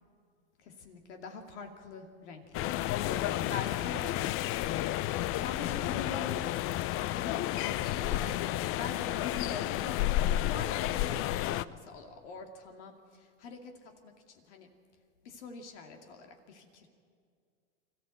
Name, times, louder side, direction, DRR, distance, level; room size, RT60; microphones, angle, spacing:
voice 1, 0.6-4.6 5.4-6.5 6.9-8.4 8.7-14.7 15.2-16.9, left 5 dB, 75° left, 4 dB, 2.6 m, -44 dB
sound 1, 2.5-11.7, left 14 dB, 40° left, 0.6 m, -31 dB
24.5 x 14.0 x 7.8 m, 2.2 s
hypercardioid pair, 105°, 35 cm